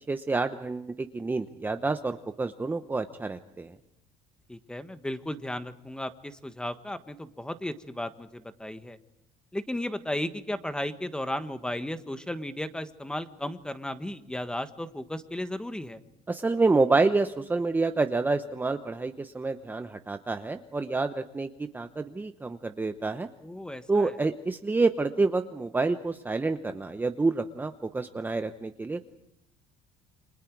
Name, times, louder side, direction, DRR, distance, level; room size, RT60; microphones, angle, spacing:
voice 1, 0.1-3.8 16.3-23.3 23.9-29.0, right 3 dB, 15° right, 8 dB, 0.9 m, -28 dB
voice 2, 4.5-9.0 9.5-16.0 23.4-24.1, left 1 dB, 5° left, 10 dB, 1.4 m, -35 dB
29.0 x 25.5 x 4.7 m, 0.80 s
cardioid pair, 125°, 15 cm